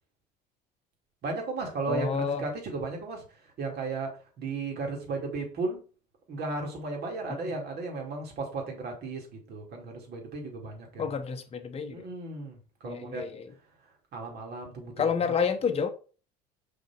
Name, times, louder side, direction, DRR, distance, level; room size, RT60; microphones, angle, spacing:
voice 1, 1.2-3.2 3.6-4.1 4.4-5.8 6.3-11.1 11.9-13.2 14.1-15.4, right 3 dB, 50° right, 2.9 m, -35 dB
voice 2, 1.9-2.4 11.0-12.0 12.8-13.5 15.0-15.9, left 6 dB, 30° left, 1.1 m, -29 dB
5.7 x 4.3 x 4.4 m
supercardioid pair, 85°, 21 cm